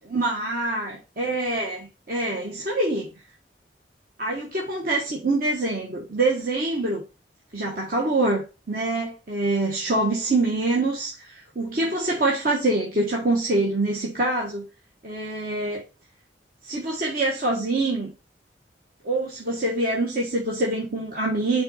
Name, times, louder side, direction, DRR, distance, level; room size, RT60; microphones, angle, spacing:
voice 1, 0.1-3.1 4.2-7.0 7.5-14.6 15.0-15.8 16.6-18.1 19.0-21.6, right 2 dB, 50° right, -2 dB, 1.4 m, -25 dB
5.7 x 3.9 x 5.5 m, 0.31 s
head